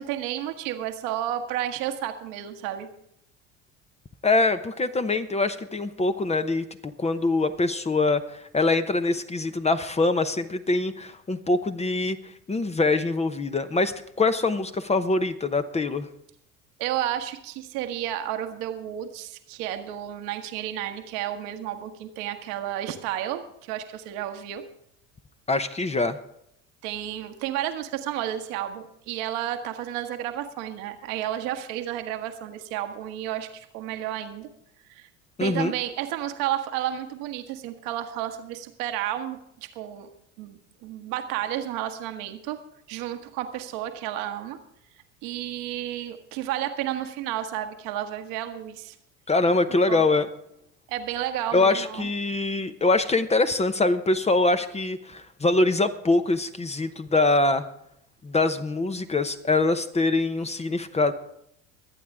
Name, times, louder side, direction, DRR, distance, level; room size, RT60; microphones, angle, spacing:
voice 1, 0.0-2.9 16.8-24.6 26.8-34.5 34.9-35.1 35.4-39.4 39.7-40.1 40.4-42.6 42.9-44.6 45.2-48.9 49.9-50.0 50.9-52.1, right 11 dB, 70° right, 6 dB, 1.4 m, -31 dB
voice 2, 4.2-12.2 12.5-16.1 25.5-26.2 35.4-35.7 49.3-50.3 51.5-57.6 58.2-61.1, left 2 dB, 20° left, 9 dB, 0.9 m, -24 dB
24.0 x 8.5 x 3.6 m, 0.73 s
hypercardioid pair, 80°, 36 cm